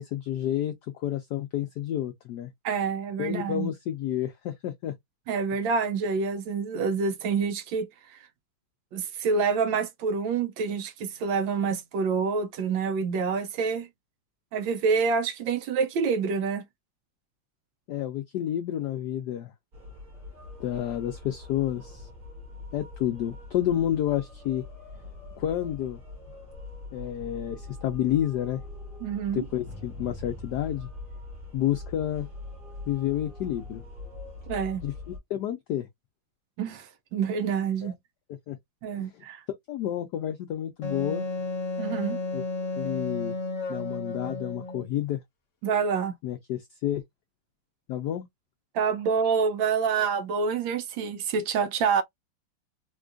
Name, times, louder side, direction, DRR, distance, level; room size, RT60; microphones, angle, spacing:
voice 1, 0.0-2.5 3.2-4.9 17.9-19.5 20.6-22.1 22.7-24.6 25.4-26.0 26.9-28.6 29.3-30.9 31.5-32.3 32.9-33.8 34.8-35.9 37.8-37.9 38.5-38.6 39.0-39.2 39.7-41.3 42.3-42.4 42.8-43.4 43.7-45.2 46.2-47.0 47.9-48.2, left 11 dB, 85° left, 0.9 m, -30 dB
voice 2, 2.6-3.7 5.3-8.2 8.9-13.9 14.5-16.6 29.0-29.4 34.5-34.8 36.6-37.9 38.8-39.4 41.8-42.2 45.6-46.1 48.7-52.0, right 5 dB, 75° right, 1.2 m, -27 dB
sound 1, 19.7-35.2, left 2 dB, 40° right, 1.8 m, -43 dB
Wind instrument woodwind instrument, 40.8-44.9, left 3 dB, 50° left, 1.0 m, -32 dB
4.3 x 2.3 x 2.5 m
omnidirectional pair, 2.3 m